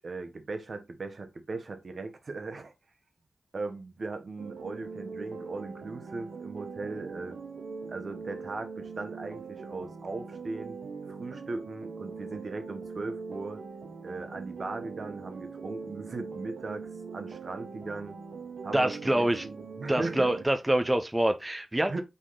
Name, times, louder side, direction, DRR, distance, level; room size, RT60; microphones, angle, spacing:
voice 1, 0.0-2.7 3.5-7.3 7.9-10.8 11.1-13.6 14.0-18.2 18.6-20.3 21.9-22.0, right 3 dB, 60° right, 0.9 m, -38 dB
sound 1, 4.4-20.5, right 5 dB, 85° right, 0.7 m, -42 dB
voice 2, 18.7-19.4 19.9-22.0, right 1 dB, 15° right, 0.5 m, -26 dB
4.1 x 3.1 x 3.7 m
cardioid pair, 50°, 0 cm